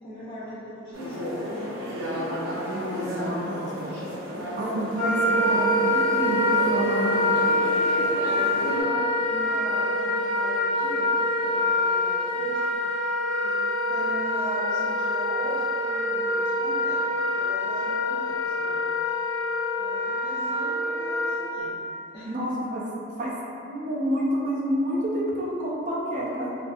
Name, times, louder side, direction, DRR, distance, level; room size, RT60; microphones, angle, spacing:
voice 1, 0.0-1.8 4.3-5.1 8.0-12.7 13.4-13.6 13.9-18.8 19.8-21.8 22.1-22.5, equal, 20° left, -11 dB, 0.4 m, -39 dB
sound 1, 0.9-8.8, equal, 90° right, 0.6 m, -33 dB
voice 2, 2.7-3.9 4.5-7.3 22.3-22.8 23.2-26.6, equal, 40° right, -5 dB, 0.4 m, -29 dB
Wind instrument woodwind instrument, 5.0-21.5, left 1 dB, 20° right, 0.9 m, -25 dB
2.5 x 2.5 x 2.3 m, 2.7 s
head